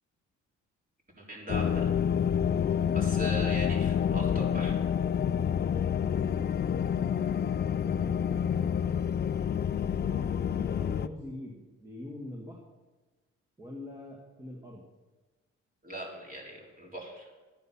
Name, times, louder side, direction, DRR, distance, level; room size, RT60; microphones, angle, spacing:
voice 1, 1.2-1.9 2.9-4.8 15.8-17.3, right 1 dB, 30° right, -2 dB, 4.2 m, -40 dB
sound 1, 1.5-11.1, left 8 dB, 35° left, 0.4 m, -28 dB
voice 2, 7.8-8.7 10.0-12.6 13.6-14.9, left 1 dB, 10° right, -2 dB, 2.1 m, -44 dB
11.5 x 9.4 x 5.8 m, 1.2 s
cardioid pair, 90°, 30 cm